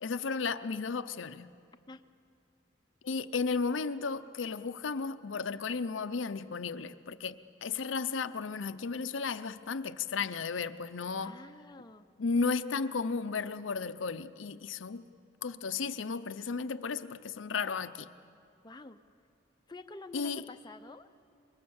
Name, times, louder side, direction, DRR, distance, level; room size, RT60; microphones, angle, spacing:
voice 1, 0.0-1.5 3.0-11.4 12.2-15.1 15.4-18.1 20.1-20.4, left 4 dB, 75° left, 11 dB, 0.6 m, -34 dB
voice 2, 11.2-12.0 18.6-19.0 19.7-21.2, left 2 dB, 20° left, 7 dB, 0.6 m, -48 dB
25.0 x 22.5 x 7.1 m, 2.4 s
head